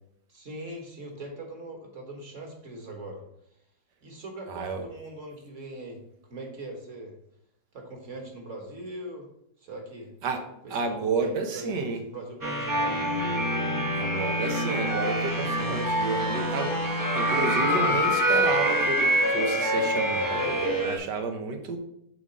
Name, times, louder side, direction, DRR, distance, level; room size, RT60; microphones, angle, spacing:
voice 1, 0.3-3.2 4.0-7.1 7.7-9.3 9.6-10.1 10.6-13.0, right 1 dB, 45° right, 1 dB, 1.8 m, -41 dB
voice 2, 4.5-4.9 10.2-10.4 10.7-12.0 14.0-21.8, right 4 dB, 80° right, 5 dB, 1.6 m, -31 dB
sound 1, 12.4-21.0, equal, 20° right, 0.6 m, -26 dB
Wind instrument woodwind instrument, 12.9-18.0, left 1 dB, 65° left, 1.4 m, -33 dB
8.1 x 3.7 x 5.3 m, 0.75 s
omnidirectional pair, 1.8 m